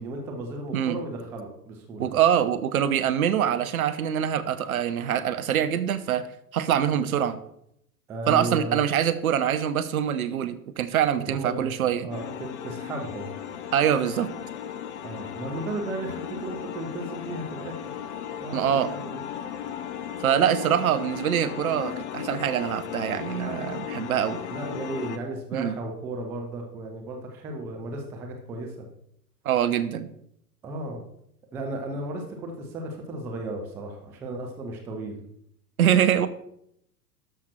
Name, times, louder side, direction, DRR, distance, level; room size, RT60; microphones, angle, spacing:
voice 1, 0.0-2.1 8.1-8.8 11.2-13.3 15.0-17.8 18.4-19.3 24.5-28.9 30.6-31.0 31.5-35.2, right 2 dB, 5° right, 2 dB, 0.4 m, -35 dB
voice 2, 2.0-6.2 6.5-7.4 8.3-12.1 13.7-14.3 18.5-18.9 20.2-24.4 25.5-25.7 29.4-30.1 35.8-36.3, right 9 dB, 60° right, 11 dB, 1.0 m, -24 dB
sound 1, 12.1-25.2, left 9 dB, 45° left, 0.7 m, -36 dB
12.5 x 5.8 x 4.5 m, 0.74 s
figure-of-eight pair, 100°, 49 cm